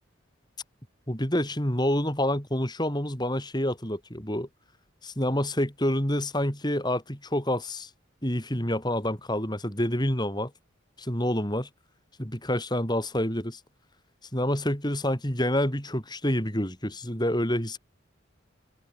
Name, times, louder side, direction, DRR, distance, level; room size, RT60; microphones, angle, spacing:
voice 1, 1.1-4.5 5.0-7.9 8.2-10.5 11.0-11.7 12.2-13.6 14.3-17.8, left 1 dB, 20° left, 6.3 m, -27 dB
open air
head